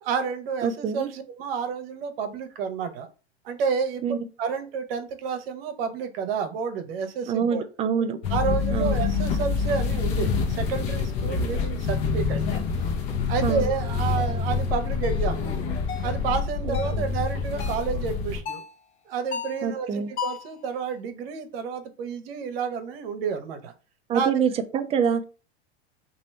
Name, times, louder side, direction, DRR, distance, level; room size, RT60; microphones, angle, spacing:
voice 1, 0.0-3.1 3.4-4.0 4.4-7.6 8.3-12.6 13.3-15.6 16.0-18.6 19.1-23.7 24.1-24.3, right 6 dB, 60° right, 9 dB, 0.9 m, -30 dB
voice 2, 0.6-1.1 4.0-4.3 7.3-8.2 8.7-9.0 13.4-13.7 16.6-17.1 19.6-20.1 24.1-25.2, right 7 dB, 20° right, 9 dB, 0.4 m, -26 dB
sound 1, 8.2-18.4, left 5 dB, 45° left, 0.9 m, -26 dB
sound 2, 14.2-14.4 15.0-15.3 15.9-16.2 16.7-17.0 17.6-17.9 18.5-18.7 19.3-19.7 20.2-20.5, left 8 dB, 80° left, 0.7 m, -35 dB
3.1 x 2.6 x 4.3 m, 0.33 s
hypercardioid pair, 95°, 33 cm